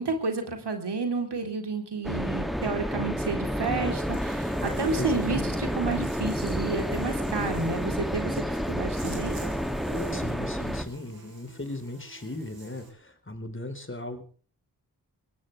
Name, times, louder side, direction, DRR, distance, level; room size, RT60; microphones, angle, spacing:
voice 1, 0.0-9.4, right 4 dB, 85° right, 5 dB, 3.8 m, -31 dB
sound 1, 2.0-10.8, equal, ahead, 2.6 m, -30 dB
Buzz, 3.8-12.9, right 2 dB, 65° right, 6.5 m, -45 dB
voice 2, 5.0-5.5 10.1-14.2, left 2 dB, 30° left, 7 dB, 4.4 m, -37 dB
22.5 x 18.5 x 3.5 m, 0.40 s
cardioid pair, 45°, 40 cm